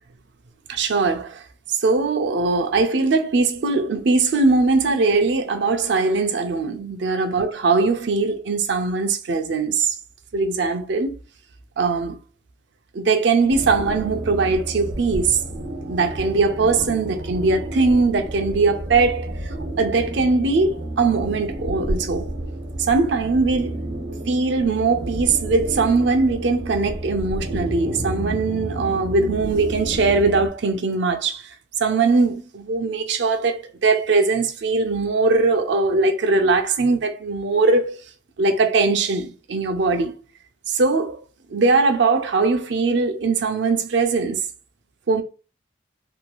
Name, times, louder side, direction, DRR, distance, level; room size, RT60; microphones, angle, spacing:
voice 1, 0.7-10.0 10.3-11.1 11.8-12.2 12.9-15.4 15.9-22.3 22.8-23.8 24.3-31.5 31.8-38.0 38.4-40.1 40.7-41.2 41.5-44.5 45.1-45.2, right 3 dB, 65° right, 0.5 m, -20 dB
sound 1, 13.5-30.5, right 1 dB, 85° right, 0.9 m, -31 dB
2.7 x 2.3 x 3.0 m
head